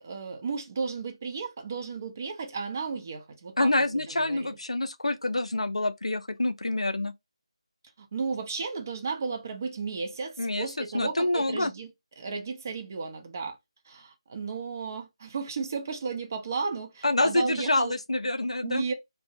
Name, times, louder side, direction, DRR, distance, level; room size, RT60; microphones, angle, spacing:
voice 1, 0.0-4.5 8.0-11.9 12.2-13.6 13.9-18.0 18.6-18.9, right 5 dB, 30° right, 0.5 m, -34 dB
voice 2, 3.6-7.1 10.4-11.7 17.0-18.8, left 2 dB, 80° left, 0.4 m, -27 dB
2.4 x 2.0 x 2.7 m
figure-of-eight pair, 160°, 3 cm